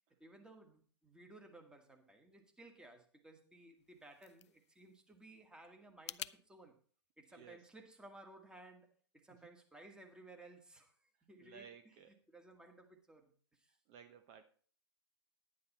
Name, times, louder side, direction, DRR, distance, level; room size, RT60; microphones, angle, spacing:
voice 1, 0.2-6.8 7.2-11.9 12.3-13.8, right 2 dB, 5° right, 5 dB, 1.6 m, -58 dB
sound 1, 3.7-6.4, left 9 dB, 80° left, 0.4 m, -51 dB
voice 2, 7.3-7.7 9.3-9.5 11.4-12.2 13.9-14.4, right 7 dB, 40° right, 9 dB, 0.9 m, -57 dB
10.5 x 9.6 x 4.2 m, 0.43 s
hypercardioid pair, 120°, 14 cm